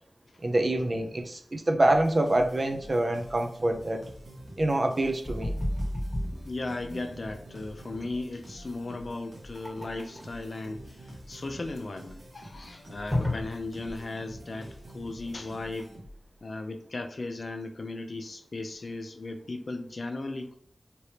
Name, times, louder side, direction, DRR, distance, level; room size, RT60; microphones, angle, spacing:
voice 1, 0.4-4.1 4.6-5.6, right 1 dB, 45° right, 5 dB, 0.5 m, -26 dB
sound 1, 1.8-16.4, right 1 dB, 75° right, 1.1 m, -48 dB
sound 2, 5.2-14.0, left 1 dB, ahead, 1.5 m, -34 dB
voice 2, 6.3-15.9 16.4-20.5, left 2 dB, 60° left, 5 dB, 0.5 m, -37 dB
3.2 x 3.0 x 2.8 m, 0.64 s
wide cardioid pair, 65°, 0 cm